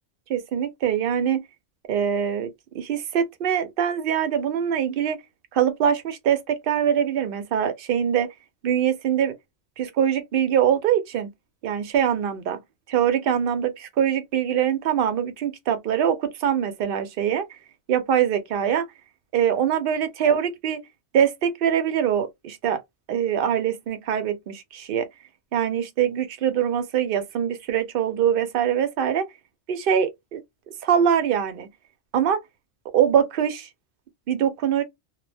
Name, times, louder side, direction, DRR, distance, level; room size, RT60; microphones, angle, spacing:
voice 1, 0.3-1.4 1.9-5.2 5.5-8.3 8.6-9.3 9.8-11.3 11.6-12.6 12.9-17.6 17.9-18.9 19.3-20.8 21.1-22.8 23.1-25.1 25.5-29.3 29.7-30.4 30.8-31.7 32.1-32.4 32.9-33.7 34.3-34.8, right 9 dB, 60° right, 0.6 m, -23 dB
2.1 x 2.1 x 3.2 m
omnidirectional pair, 1.3 m